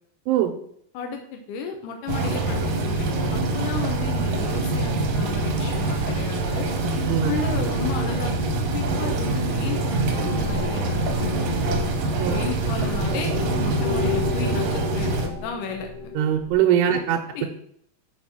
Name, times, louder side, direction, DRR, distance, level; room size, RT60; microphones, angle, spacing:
voice 1, 0.9-6.7 7.2-11.6 12.3-13.3 13.6-15.9 16.9-17.0 17.3-17.4, left 5 dB, 75° left, 3 dB, 2.0 m, -33 dB
sound 1, 2.1-15.3, right 2 dB, 70° right, 2.0 m, -25 dB
sound 2, 10.1-16.5, left 4 dB, 55° left, 2.6 m, -32 dB
voice 2, 16.2-17.5, right 10 dB, 90° right, 2 dB, 2.8 m, -21 dB
6.7 x 4.5 x 5.9 m, 0.67 s
omnidirectional pair, 4.7 m